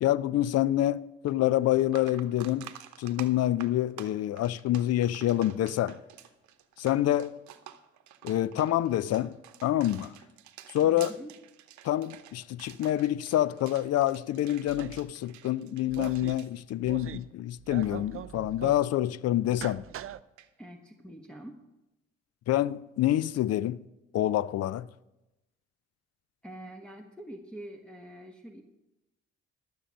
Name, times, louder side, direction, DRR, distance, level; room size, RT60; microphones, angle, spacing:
voice 1, 0.0-2.7 3.0-6.0 6.8-7.4 8.2-10.2 10.7-11.1 11.8-19.8 22.5-23.8 24.1-24.9, left 13 dB, 60° left, 0.5 m, -27 dB
sound 1, 1.3-1.4 1.8-17.4 17.7-17.9 20.4-20.5, right 11 dB, 75° right, 0.9 m, -50 dB
voice 2, 10.8-11.3 20.6-21.6 26.4-28.6, right 1 dB, 5° left, 1.3 m, -45 dB
sound 2, 14.7-15.1 15.9-16.4 16.8-17.3 17.6-18.9 19.5-20.2, right 11 dB, 45° right, 0.5 m, -41 dB
12.5 x 7.0 x 6.3 m
hypercardioid pair, 55°, 30 cm